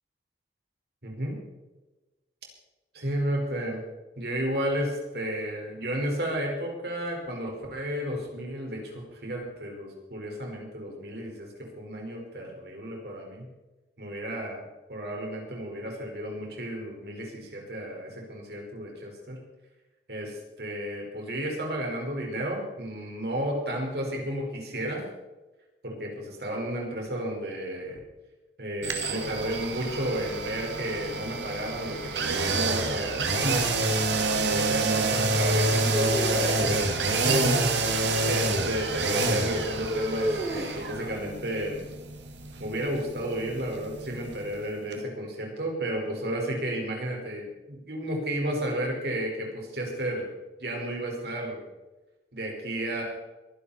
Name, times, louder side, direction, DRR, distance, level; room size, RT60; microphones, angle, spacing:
voice 1, 1.0-1.4 2.9-3.8 4.1-11.5 11.8-13.5 14.0-14.6 14.9-19.4 20.1-25.0 25.8-28.0 28.6-33.6 34.3-36.8 37.2-41.9 42.6-50.3 50.6-51.6 52.3-53.0, right 1 dB, 65° right, 0 dB, 5.0 m, -32 dB
sound 1, 28.8-44.6 44.9-45.0, right 3 dB, 90° right, 2.0 m, -28 dB
sound 2, 35.9-37.3 39.9-41.1, equal, 20° right, 3.2 m, -32 dB
22.5 x 11.5 x 4.3 m, 1.1 s
head